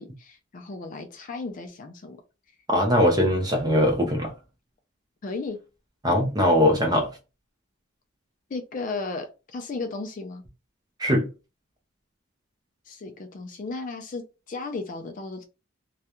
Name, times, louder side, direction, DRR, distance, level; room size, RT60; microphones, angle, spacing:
voice 1, 0.0-2.2 5.2-5.6 8.5-10.4 12.9-15.4, left 3 dB, 40° left, 0.3 m, -35 dB
voice 2, 2.7-4.3 6.0-7.1 11.0-11.3, left 1 dB, 20° right, 0.5 m, -21 dB
2.3 x 2.1 x 2.8 m
head